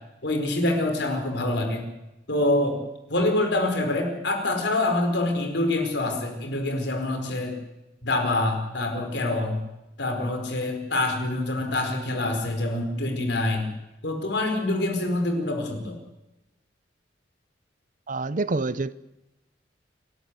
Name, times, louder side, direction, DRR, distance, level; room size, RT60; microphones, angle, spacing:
voice 1, 0.2-1.9 2.3-2.8 3.1-7.6 8.0-9.6 10.0-13.7 14.0-16.0, left 2 dB, 65° left, 4.8 m, -26 dB
voice 2, 18.1-18.9, right 3 dB, 45° right, 0.7 m, -27 dB
28.5 x 12.5 x 8.2 m
head